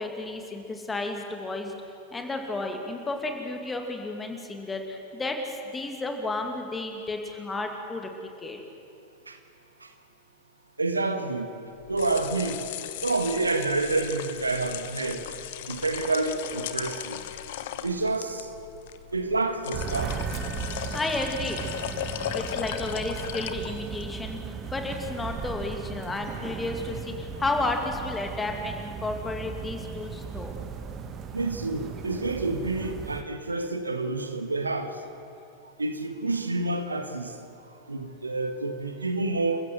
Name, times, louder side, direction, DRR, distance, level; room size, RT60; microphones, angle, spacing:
voice 1, 0.0-1.7 2.1-8.1 8.4-8.6 20.9-21.6 22.3-30.5, left 2 dB, 10° left, 4 dB, 2.5 m, -32 dB
voice 2, 10.8-11.5 11.9-12.6 13.0-15.2 15.7-17.2 17.8-18.5 19.1-20.1 31.3-34.9 35.8-37.3 37.9-39.6, right 3 dB, 80° right, 7 dB, 1.6 m, -28 dB
sound 1, 11.8-24.1, left 11 dB, 55° left, 1.0 m, -37 dB
sound 2, 19.7-33.2, right 6 dB, 30° right, 1.4 m, -37 dB
29.0 x 15.0 x 7.8 m, 2.5 s
figure-of-eight pair, 90°, 0 cm